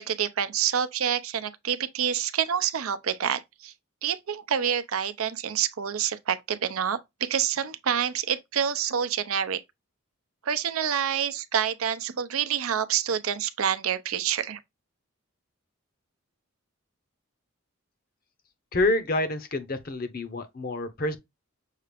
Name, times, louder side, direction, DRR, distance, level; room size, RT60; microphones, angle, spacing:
voice 1, 0.0-3.7 4.0-9.6 10.4-14.6, right 8 dB, 80° right, 0.6 m, -27 dB
voice 2, 18.7-21.2, left 2 dB, 45° left, 0.8 m, -27 dB
6.5 x 2.4 x 3.3 m
head